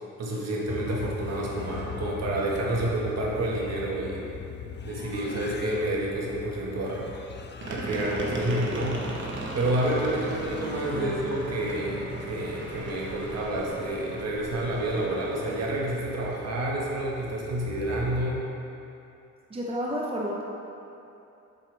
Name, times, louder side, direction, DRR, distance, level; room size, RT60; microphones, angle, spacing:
voice 1, 0.2-4.3 4.8-7.1 7.7-9.0 9.5-18.4, right 1 dB, 60° right, -3 dB, 1.8 m, -29 dB
sound 1, 0.7-18.3, left 5 dB, 35° left, 0.6 m, -41 dB
sound 2, 7.6-15.9, right 2 dB, 40° right, 1.3 m, -38 dB
voice 2, 10.9-11.3 19.5-20.4, equal, 20° right, -3 dB, 0.9 m, -31 dB
8.2 x 7.4 x 3.5 m, 2.8 s
cardioid pair, 90°, 30 cm